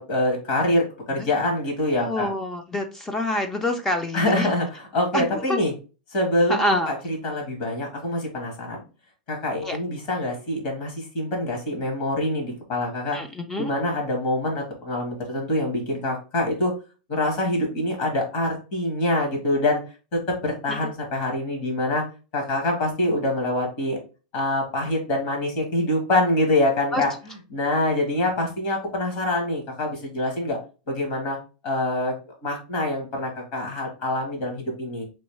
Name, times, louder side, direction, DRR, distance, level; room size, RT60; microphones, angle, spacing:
voice 1, 0.0-2.3 4.1-5.7 6.1-6.6 6.9-8.8 9.3-13.2 13.6-16.7 17.1-19.8 20.1-22.0 22.3-24.0 24.3-27.1 27.5-30.6 30.9-31.4 31.6-32.1 32.4-35.0, left 1 dB, 50° left, 2 dB, 1.4 m, -25 dB
voice 2, 2.0-4.5 5.1-5.6 6.5-7.0 9.6-9.8 13.1-13.7 20.7-20.8 26.9-27.0, left 1 dB, 10° left, 6 dB, 0.3 m, -26 dB
3.1 x 2.7 x 3.1 m, 0.33 s
supercardioid pair, 155°, 4 cm